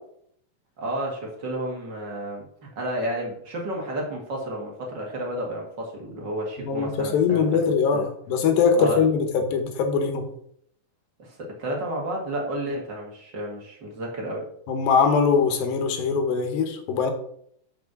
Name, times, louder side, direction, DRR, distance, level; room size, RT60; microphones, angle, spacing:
voice 1, 0.8-7.4 7.9-8.1 8.8-9.0 11.2-14.5, right 1 dB, 45° right, 0 dB, 1.7 m, -31 dB
voice 2, 6.6-10.2 14.7-17.1, left 5 dB, 90° left, 6 dB, 2.9 m, -22 dB
6.2 x 5.9 x 6.0 m, 0.69 s
omnidirectional pair, 4.0 m